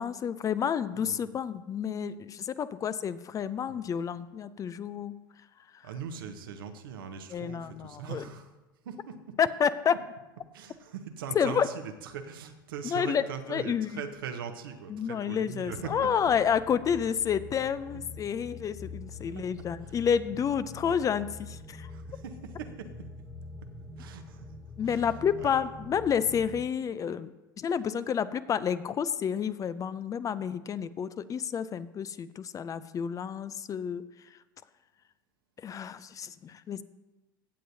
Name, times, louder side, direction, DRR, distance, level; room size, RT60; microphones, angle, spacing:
voice 1, 0.0-5.1 7.3-8.2 9.4-9.9 11.3-11.7 12.8-13.2 13.5-14.0 14.9-21.9 24.8-27.3 27.6-34.0 35.6-36.8, left 7 dB, 30° left, 15 dB, 0.4 m, -30 dB
voice 2, 0.9-1.3 3.7-3.8 5.8-8.5 8.8-9.3 9.9-10.0 10.5-16.1 17.9-18.0 19.3-20.0 20.8-21.0 21.9-22.9 24.0-24.5 24.8-25.6, right 7 dB, 75° right, 7 dB, 1.0 m, -41 dB
sound 1, 15.6-26.6, left 2 dB, 5° right, 1.1 m, -45 dB
16.0 x 7.7 x 2.7 m, 1.1 s
hypercardioid pair, 85°, 12 cm